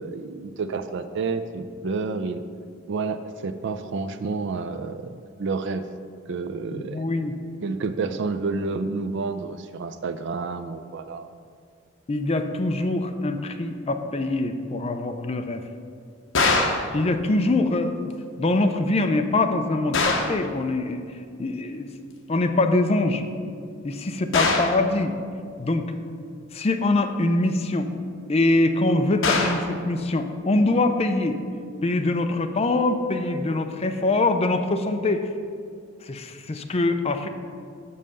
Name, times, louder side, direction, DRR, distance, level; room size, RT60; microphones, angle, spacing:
voice 1, 0.0-2.4 2.9-5.8 6.3-7.0 7.6-11.3, right 4 dB, 65° right, 10 dB, 0.4 m, -29 dB
voice 2, 6.7-7.3 12.1-15.6 16.9-18.1 18.4-21.0 21.4-21.9 22.3-23.2 23.8-25.2 25.6-25.9 26.5-27.9 28.3-31.4 31.8-35.3 36.1-37.3, left 2 dB, 30° left, 7 dB, 0.5 m, -23 dB
sound 1, 16.3-16.9 19.9-20.4 24.3-24.8 29.2-29.7, left 3 dB, 70° left, 0.9 m, -22 dB
6.3 x 5.5 x 6.7 m, 2.3 s
head